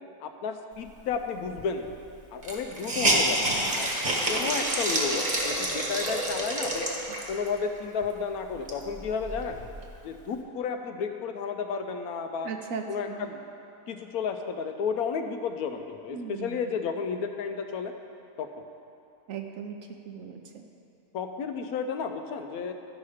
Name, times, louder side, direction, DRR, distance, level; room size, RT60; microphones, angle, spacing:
voice 1, 0.2-1.9 2.3-3.9 4.3-6.9 7.3-9.6 10.0-12.5 12.9-13.4 13.9-17.9 18.4-18.6 21.1-22.7, left 6 dB, 75° left, 6 dB, 1.0 m, -32 dB
Hiss, 1.6-1.7 1.9-2.0 2.4-7.5 8.0-8.1 8.5-9.9, right 1 dB, 30° right, 1.2 m, -28 dB
voice 2, 12.4-13.3 16.1-16.7 19.3-19.8 20.0-20.7, right 6 dB, 65° right, 4 dB, 0.9 m, -38 dB
12.5 x 5.6 x 4.9 m, 2.7 s
omnidirectional pair, 1.7 m